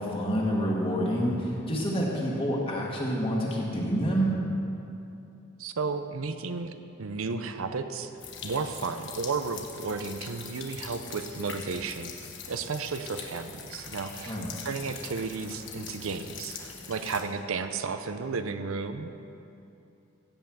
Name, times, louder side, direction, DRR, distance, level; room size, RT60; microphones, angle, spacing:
voice 1, 0.0-4.4 14.3-14.5, equal, 25° left, -3 dB, 1.9 m, -28 dB
voice 2, 5.6-8.1 8.4-12.1 12.5-14.4 14.6-19.2, right 4 dB, 80° right, 9 dB, 0.6 m, -33 dB
sound 1, 8.2-17.2, left 5 dB, 55° left, 1.3 m, -43 dB
16.0 x 5.6 x 7.7 m, 2.8 s
head